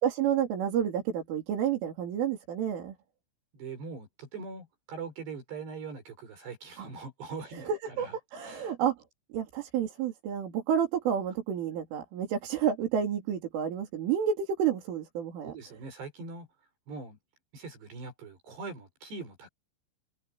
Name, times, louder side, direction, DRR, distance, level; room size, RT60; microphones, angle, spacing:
voice 1, 0.0-2.9 6.8-6.9 7.5-9.0 9.3-15.5, right 8 dB, 90° right, 6.2 m, -30 dB
voice 2, 3.5-8.2 8.4-8.7 15.4-16.5 16.9-17.2 17.5-19.5, right 4 dB, 60° right, 7.5 m, -42 dB
omnidirectional pair, 5.5 m